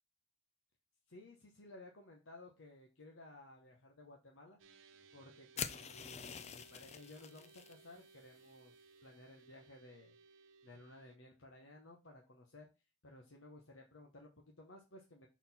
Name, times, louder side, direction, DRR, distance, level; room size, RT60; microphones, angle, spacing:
voice 1, 1.1-4.6 5.1-10.1 10.6-12.7 13.0-15.3, left 2 dB, 80° left, 1 dB, 1.0 m, -57 dB
sound 1, 4.6-11.2, right 4 dB, 75° right, 0.7 m, -63 dB
sound 2, 5.6-7.7, left 7 dB, 35° left, 0.4 m, -45 dB
6.2 x 4.1 x 4.1 m, 0.29 s
head